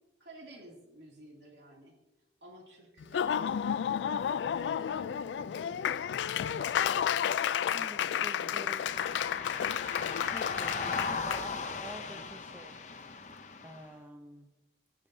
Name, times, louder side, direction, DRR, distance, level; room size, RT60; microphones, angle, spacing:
voice 1, 0.2-2.0 2.4-3.7 4.2-6.0 6.3-9.5 10.3-11.2 12.0-12.3, right 1 dB, 70° right, -1 dB, 2.7 m, -53 dB
Laughter / Applause, 3.0-11.4, left 8 dB, 75° left, 0.3 m, -31 dB
voice 2, 7.7-8.9 10.3-12.8 13.2-13.3 13.6-14.5, right 1 dB, 10° right, 4 dB, 0.6 m, -48 dB
sound 1, 8.7-13.9, left 4 dB, 40° left, 0.7 m, -38 dB
19.5 x 7.4 x 2.7 m, 1.0 s
head